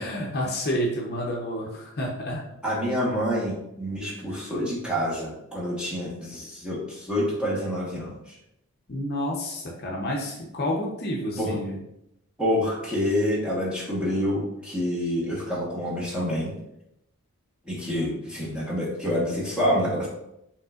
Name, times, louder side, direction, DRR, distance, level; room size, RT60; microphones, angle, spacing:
voice 1, 0.0-2.4 8.9-11.8, equal, 45° left, -2 dB, 0.7 m, -29 dB
voice 2, 2.6-8.1 11.4-11.6 12.4-16.5 17.7-20.1, equal, 5° right, -6 dB, 1.1 m, -27 dB
5.3 x 3.2 x 2.4 m, 0.83 s
head